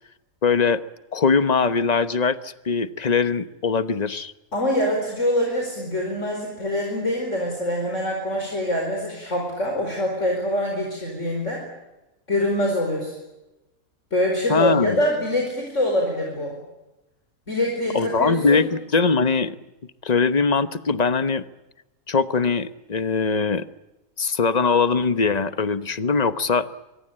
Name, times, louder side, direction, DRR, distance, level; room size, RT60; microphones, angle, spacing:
voice 1, 0.4-0.8 1.1-4.3 14.5-15.0 17.9-19.6 20.0-21.4 22.1-23.7 24.2-26.7, left 4 dB, 30° left, 12 dB, 1.0 m, -21 dB
voice 2, 4.5-11.6 12.3-13.2 14.1-16.6 17.5-18.7, left 1 dB, 50° left, 1 dB, 5.1 m, -24 dB
24.5 x 23.5 x 8.8 m, 1.0 s
omnidirectional pair, 1.6 m